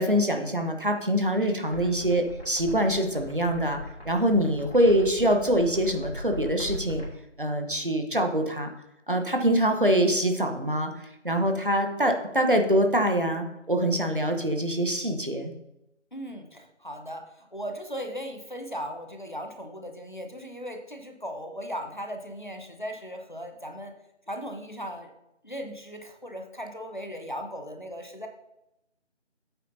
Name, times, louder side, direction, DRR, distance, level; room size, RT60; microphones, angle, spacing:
voice 1, 0.0-7.0 7.4-8.7 9.1-10.9 11.2-15.5, equal, 45° right, 5 dB, 1.1 m, -24 dB
sound 1, 1.7-7.1, left 1 dB, 60° left, 2.5 m, -39 dB
voice 2, 16.1-23.9 24.3-25.1 25.4-28.3, equal, 40° left, 4 dB, 1.0 m, -37 dB
9.2 x 8.3 x 2.8 m, 0.87 s
figure-of-eight pair, 180°, 36 cm